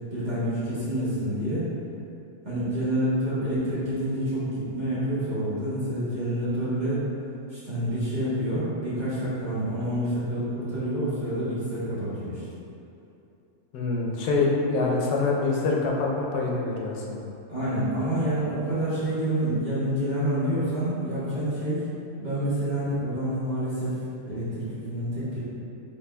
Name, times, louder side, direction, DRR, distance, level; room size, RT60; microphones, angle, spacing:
voice 1, 0.1-1.7 2.4-7.0 7.5-12.4 17.5-21.8 22.2-24.0 24.2-25.4, right 1 dB, 30° right, -13 dB, 1.4 m, -28 dB
voice 2, 13.7-17.2, left 3 dB, 80° left, -2 dB, 1.2 m, -25 dB
5.9 x 3.5 x 2.2 m, 2.8 s
omnidirectional pair, 1.7 m